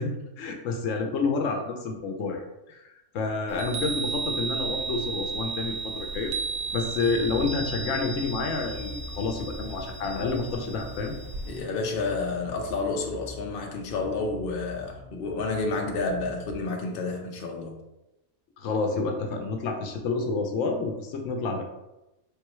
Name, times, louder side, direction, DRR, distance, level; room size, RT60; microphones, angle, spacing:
voice 1, 0.0-6.3 6.7-11.1 18.6-21.6, left 4 dB, 85° left, 4 dB, 1.0 m, -29 dB
Chime, 3.5-11.6, right 4 dB, 65° right, 0.7 m, -34 dB
sound 1, 7.0-16.5, left 1 dB, 20° left, 1.7 m, -44 dB
voice 2, 11.5-17.8, left 3 dB, 55° left, 1 dB, 0.9 m, -30 dB
4.5 x 3.6 x 3.0 m, 0.95 s
omnidirectional pair, 1.3 m